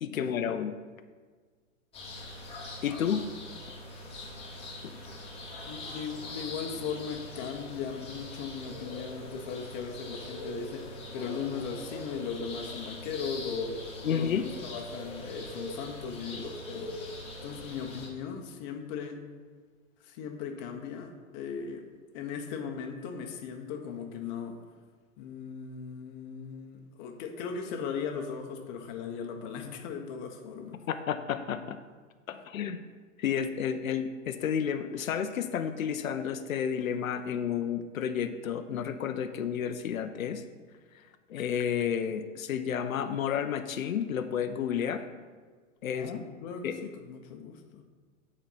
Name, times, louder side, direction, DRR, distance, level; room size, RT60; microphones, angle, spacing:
voice 1, 0.0-0.7 2.8-3.3 4.8-5.0 14.0-14.5 30.9-31.8 32.3-32.8 33.2-40.4 41.3-45.0 45.8-46.1 46.6-46.7, left 8 dB, 85° left, 8 dB, 0.7 m, -31 dB
sound 1, 1.9-18.1, left 1 dB, 15° left, 1.7 m, -42 dB
voice 2, 5.7-10.9 11.1-16.9 17.4-19.2 20.0-21.9 22.1-24.6 25.2-30.8 45.9-47.8, left 6 dB, 35° left, 4 dB, 1.0 m, -38 dB
8.9 x 4.3 x 5.7 m, 1.5 s
hypercardioid pair, 135°, 40 cm